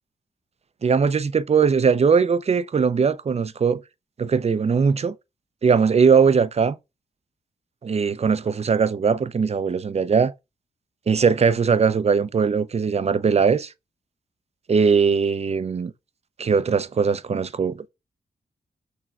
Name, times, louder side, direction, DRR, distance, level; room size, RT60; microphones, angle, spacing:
voice 1, 0.8-3.8 4.2-5.2 5.6-6.8 7.8-10.3 11.1-13.7 14.7-15.9 16.4-17.9, right 5 dB, 40° right, 0.5 m, -20 dB
6.2 x 3.1 x 2.4 m
cardioid pair, 50°, 17 cm